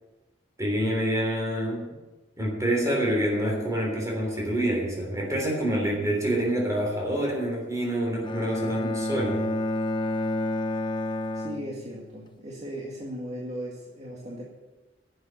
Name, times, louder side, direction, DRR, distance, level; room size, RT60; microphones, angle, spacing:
voice 1, 0.6-1.9 2.4-9.4, right 1 dB, 20° right, -1 dB, 3.4 m, -27 dB
Bowed string instrument, 8.2-12.3, left 1 dB, 25° left, 0.8 m, -30 dB
voice 2, 11.3-14.4, equal, 40° right, -3 dB, 2.0 m, -37 dB
11.5 x 7.9 x 8.9 m, 1.1 s
head